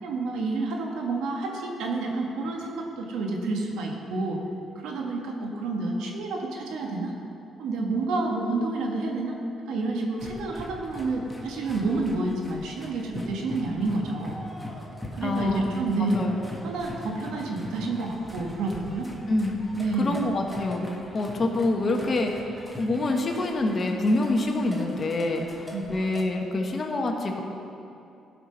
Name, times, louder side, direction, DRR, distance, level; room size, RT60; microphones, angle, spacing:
voice 1, 0.0-4.4 4.8-7.1 7.6-9.4 9.7-14.4 15.2-16.3 16.6-19.1 19.8-20.2 25.7-26.0, right 3 dB, 90° right, 1 dB, 1.5 m, -29 dB
sound 1, 10.2-26.2, left 1 dB, ahead, 1.3 m, -41 dB
voice 2, 15.2-15.6 16.1-16.4 19.3-19.5 20.0-20.8 21.1-27.4, left 2 dB, 35° left, 2 dB, 1.3 m, -26 dB
15.0 x 6.0 x 5.6 m, 2.7 s
cardioid pair, 110°, 0 cm